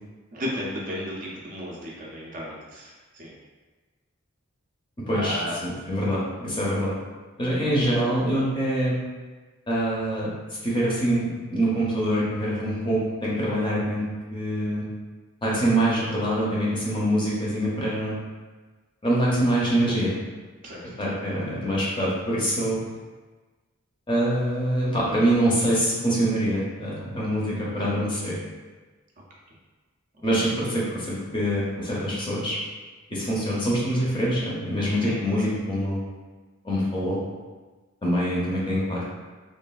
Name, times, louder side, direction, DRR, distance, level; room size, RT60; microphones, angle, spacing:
voice 1, 0.3-3.3 5.1-5.6 7.5-7.7 20.6-20.8 30.4-30.5 35.0-35.5, equal, 40° right, -4 dB, 0.4 m, -34 dB
voice 2, 5.1-6.9 7.4-9.0 9.7-10.3 10.6-14.0 14.3-14.8 15.4-18.1 19.0-20.2 21.0-22.8 24.1-28.4 30.2-32.6 33.1-36.0 36.6-37.2 38.0-39.1, right 1 dB, 20° left, -6 dB, 0.5 m, -25 dB
3.1 x 2.3 x 2.3 m, 1.3 s
head